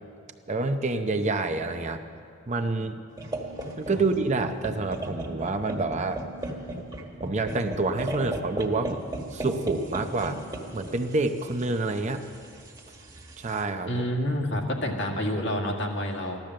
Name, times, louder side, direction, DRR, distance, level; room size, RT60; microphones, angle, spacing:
voice 1, 0.5-2.0 2.5-3.0 3.8-6.2 7.2-9.0 9.3-10.4 10.7-12.2 13.4-14.0, right 3 dB, 35° right, 7 dB, 0.7 m, -27 dB
sound 1, 3.2-13.6, right 1 dB, 20° right, 1.6 m, -37 dB
voice 2, 13.9-16.4, equal, 60° left, 1 dB, 1.9 m, -28 dB
15.5 x 12.0 x 7.6 m, 2.4 s
head